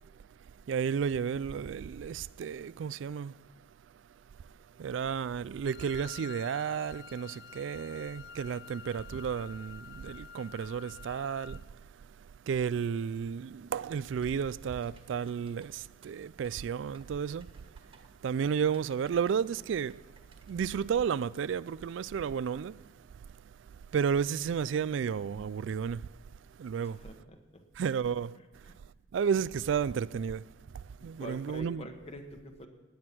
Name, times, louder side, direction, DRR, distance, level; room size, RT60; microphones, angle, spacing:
voice 1, 0.7-3.3 4.8-11.6 12.5-17.5 18.2-20.0 20.5-22.8 23.9-26.1 26.6-27.0 27.8-28.4 29.1-30.4 31.0-31.9, right 7 dB, 75° right, 0.3 m, -32 dB
Wind instrument woodwind instrument, 5.6-11.7, left 8 dB, 55° left, 0.5 m, -49 dB
Typing, 14.0-21.1, right 1 dB, 30° right, 1.6 m, -61 dB
voice 2, 26.8-27.6 28.7-28.8 31.0-32.7, equal, 30° left, 1.5 m, -46 dB
17.5 x 9.6 x 6.0 m
head